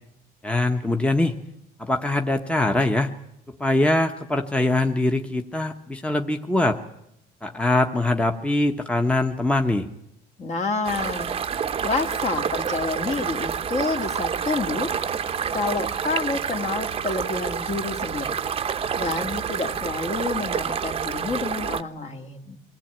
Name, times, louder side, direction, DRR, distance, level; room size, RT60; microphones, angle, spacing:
voice 1, 0.4-1.4 1.8-3.1 3.6-6.8 7.4-9.9, left 2 dB, 5° left, 5 dB, 1.0 m, -22 dB
voice 2, 10.4-11.3 11.8-14.9 15.5-18.4 19.0-22.6, left 3 dB, 40° left, 5 dB, 2.2 m, -28 dB
sound 1, 10.8-21.8, right 7 dB, 35° right, 0.8 m, -28 dB
23.5 x 17.5 x 9.0 m, 0.82 s
cardioid pair, 110°, 17 cm